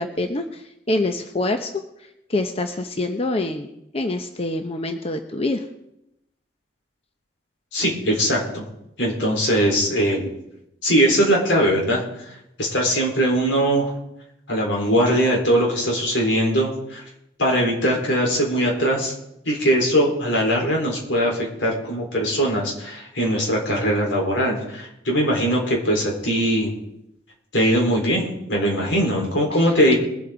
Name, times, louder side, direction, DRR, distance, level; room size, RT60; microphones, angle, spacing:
voice 1, 0.0-1.7 2.3-3.7 3.9-5.6, left 2 dB, 35° left, 6 dB, 0.8 m, -25 dB
voice 2, 7.7-8.6 9.0-10.3 10.8-13.9 14.5-17.0 17.4-19.1 19.4-26.7 27.5-29.9, equal, 90° left, -1 dB, 4.0 m, -21 dB
22.0 x 8.3 x 3.9 m, 0.83 s
head